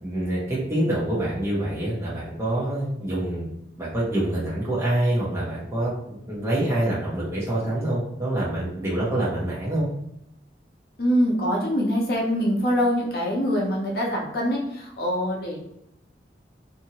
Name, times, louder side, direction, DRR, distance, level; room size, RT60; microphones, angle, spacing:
voice 1, 0.0-3.5 3.8-9.8, right 1 dB, 15° right, -7 dB, 0.8 m, -26 dB
voice 2, 11.0-15.6, equal, 55° left, -2 dB, 0.7 m, -24 dB
2.6 x 2.6 x 2.8 m, 0.81 s
head